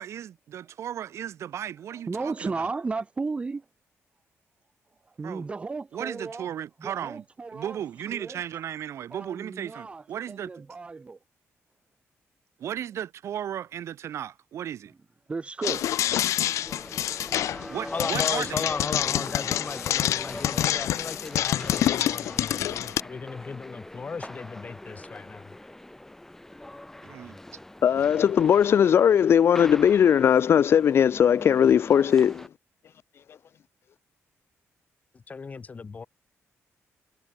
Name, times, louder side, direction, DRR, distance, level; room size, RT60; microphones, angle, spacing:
voice 1, 0.0-2.7 5.2-7.3 7.5-10.5 12.6-14.9 17.7-18.7 27.0-27.4, right 10 dB, 70° right, 2.6 m, -35 dB
voice 2, 2.1-3.6 5.2-6.5 6.8-7.8 8.1-8.4 9.1-10.0 10.4-11.2 15.3-15.9, right 4 dB, 25° right, 1.0 m, -34 dB
sound 1, 15.6-23.0, left 12 dB, 85° left, 0.4 m, -27 dB
sound 2, 16.1-32.5, left 1 dB, 10° left, 2.9 m, -42 dB
voice 3, 17.9-25.5 35.1-36.1, left 5 dB, 30° left, 4.0 m, -36 dB
voice 4, 27.8-32.5, left 8 dB, 55° left, 1.0 m, -19 dB
cardioid pair, 145°, 5 cm